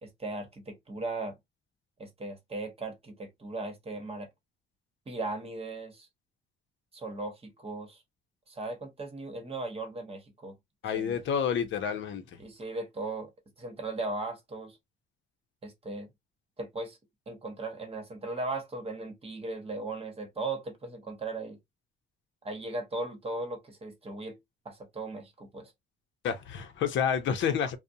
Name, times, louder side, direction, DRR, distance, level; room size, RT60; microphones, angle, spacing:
voice 1, 0.0-1.4 2.0-4.3 5.1-6.1 6.9-8.0 8.5-10.6 10.9-11.2 12.4-13.3 13.6-14.8 15.6-16.1 16.6-17.0 17.3-21.6 22.4-24.4 24.6-25.7, right 2 dB, 30° right, 1.0 m, -37 dB
voice 2, 10.8-12.4 26.2-27.8, left 7 dB, 70° left, 0.6 m, -29 dB
2.5 x 2.0 x 2.6 m
cardioid pair, 90°, 20 cm